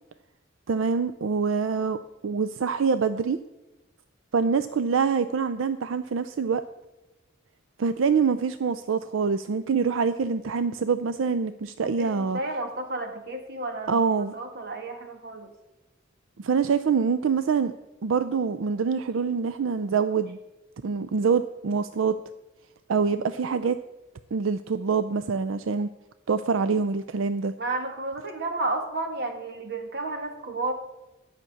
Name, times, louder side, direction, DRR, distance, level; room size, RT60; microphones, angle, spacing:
voice 1, 0.7-2.0 2.2-3.4 4.3-6.6 7.8-12.4 13.9-14.3 16.4-17.7 18.0-20.4 20.8-22.1 22.9-23.8 24.3-25.9 26.3-27.5, right 5 dB, 85° right, 12 dB, 0.5 m, -25 dB
voice 2, 11.8-15.5 27.6-30.7, right 2 dB, 55° right, 4 dB, 1.7 m, -32 dB
11.5 x 6.0 x 8.4 m, 1.0 s
head